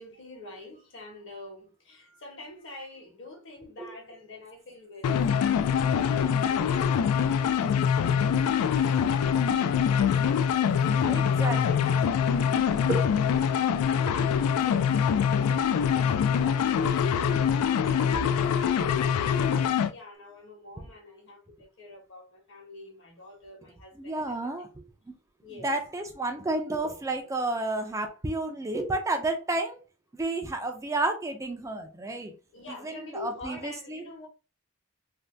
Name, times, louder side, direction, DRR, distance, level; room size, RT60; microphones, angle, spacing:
voice 1, 0.0-14.2 14.6-24.7 25.4-25.8 32.5-34.3, left 2 dB, 60° left, 1.1 m, -47 dB
sound 1, 5.0-19.9, left 7 dB, 85° left, 0.3 m, -24 dB
voice 2, 11.0-11.9 12.9-13.0 14.1-14.2 24.0-24.7 25.6-29.8 30.2-32.3 32.8-34.0, right 2 dB, 15° right, 0.3 m, -31 dB
2.6 x 2.1 x 3.2 m
head